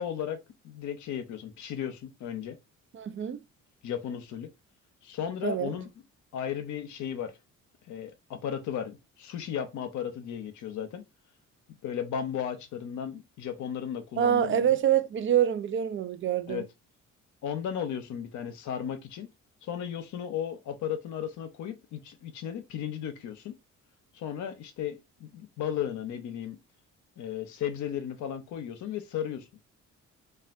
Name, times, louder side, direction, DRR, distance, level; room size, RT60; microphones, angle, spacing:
voice 1, 0.0-2.6 3.8-4.5 5.0-5.9 6.3-7.3 7.9-11.0 11.8-14.7 16.5-16.6 17.4-19.3 19.6-23.5 24.1-26.6 27.2-29.5, left 9 dB, 75° left, 0.7 m, -35 dB
voice 2, 2.9-3.4 5.4-5.7 14.2-16.6, right 10 dB, 40° right, 0.5 m, -26 dB
3.3 x 2.4 x 2.5 m
cardioid pair, 90°, 30 cm